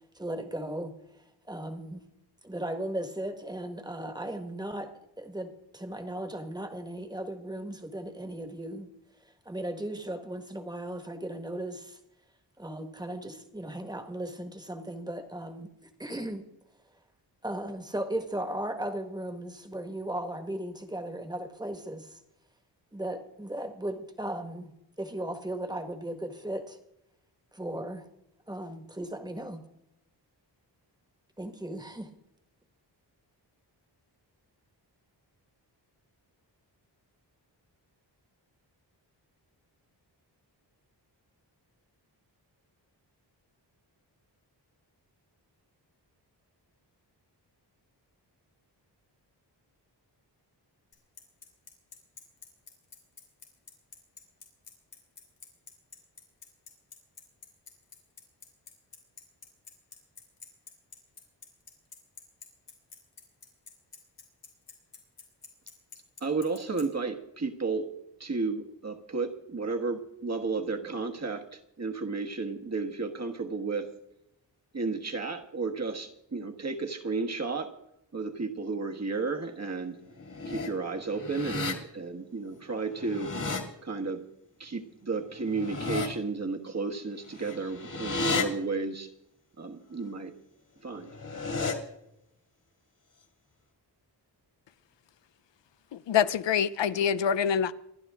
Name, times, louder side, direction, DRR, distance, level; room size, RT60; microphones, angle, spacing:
voice 1, 0.1-0.9 1.5-2.0 2.4-4.9 5.2-8.9 9.2-12.0 12.6-16.4 17.4-22.2 22.9-24.7 25.0-26.8 27.5-28.0 28.5-29.6 31.4-32.1, right 1 dB, 10° right, 1.5 m, -36 dB
Bicycle, 50.9-66.8, left 5 dB, 75° left, 3.9 m, -48 dB
voice 2, 66.2-67.9 68.2-73.9 74.7-77.7 78.1-80.0 80.5-83.3 83.8-84.2 84.6-89.1 89.6-90.3 90.8-91.1, right 4 dB, 40° right, 1.4 m, -33 dB
sound 1, 80.1-80.7 81.1-81.7 82.9-83.6 85.4-86.1 87.3-88.4 91.0-91.7, left 3 dB, 45° left, 2.1 m, -33 dB
voice 3, 96.1-97.7, left 8 dB, 90° left, 0.7 m, -25 dB
27.0 x 11.0 x 3.6 m
wide cardioid pair, 145°, 43 cm